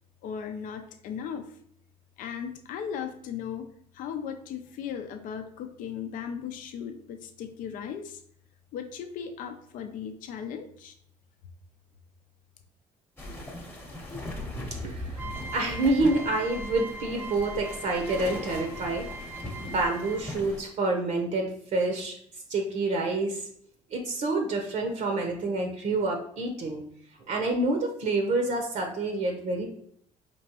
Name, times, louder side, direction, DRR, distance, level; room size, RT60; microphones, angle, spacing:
voice 1, 0.2-1.5 2.2-3.7 3.9-8.2 8.7-10.9, left 7 dB, 70° left, 6 dB, 0.5 m, -37 dB
sound 1, 13.2-20.6, left 1 dB, 15° left, 0.9 m, -39 dB
voice 2, 14.8-15.2 15.5-19.1 19.6-22.1 22.5-23.5 23.9-26.8 27.3-29.7, right 2 dB, 55° right, 2 dB, 0.8 m, -28 dB
sound 2, 15.1-20.4, right 2 dB, 15° right, 0.6 m, -41 dB
4.4 x 3.0 x 2.9 m, 0.66 s
cardioid pair, 105°, 14 cm